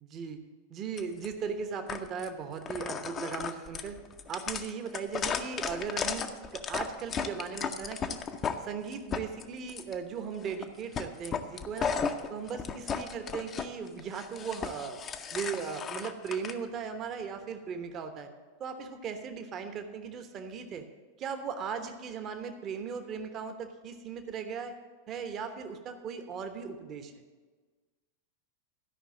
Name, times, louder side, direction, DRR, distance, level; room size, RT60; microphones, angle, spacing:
voice 1, 0.0-0.4 0.7-4.0 4.3-8.2 8.6-12.0 12.3-15.0 15.3-18.3 18.6-20.8 21.2-24.7 25.1-27.1, right 6 dB, 30° right, 7 dB, 1.1 m, -38 dB
sound 1, 1.0-1.3 1.9-2.3 2.6-8.6 8.9-9.9 10.4-10.7 10.9-13.7 14.0-16.5, left 6 dB, 25° left, 0.7 m, -35 dB
12.5 x 5.6 x 7.4 m, 1.4 s
figure-of-eight pair, 90°, 0 cm